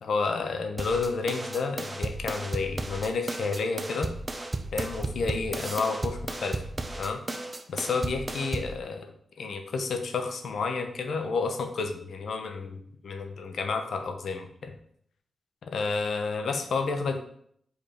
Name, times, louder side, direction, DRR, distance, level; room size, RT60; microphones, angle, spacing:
voice 1, 0.0-4.1 4.7-6.6 7.0-7.2 7.7-9.1 9.4-14.7 15.6-17.2, left 4 dB, 75° left, 6 dB, 0.9 m, -30 dB
sound 1, 0.8-8.8, right 2 dB, 30° right, 0.8 m, -34 dB
5.1 x 4.9 x 4.4 m, 0.66 s
cardioid pair, 60°, 0 cm